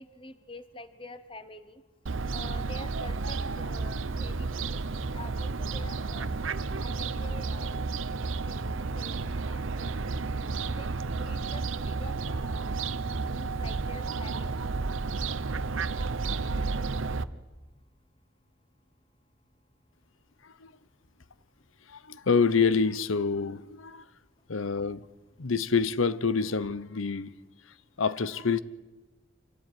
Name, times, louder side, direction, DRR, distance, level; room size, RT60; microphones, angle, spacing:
voice 1, 0.0-1.8 2.3-4.8 5.1-8.0 8.4-9.9 10.7-12.8 13.3-14.6, left 2 dB, 25° left, 1.0 m, -47 dB
Fowl, 2.1-17.2, right 4 dB, 75° right, 0.8 m, -32 dB
voice 2, 21.9-24.0 24.5-25.1 25.4-27.3 28.0-28.6, left 5 dB, 80° left, 0.9 m, -27 dB
26.0 x 16.5 x 9.5 m
head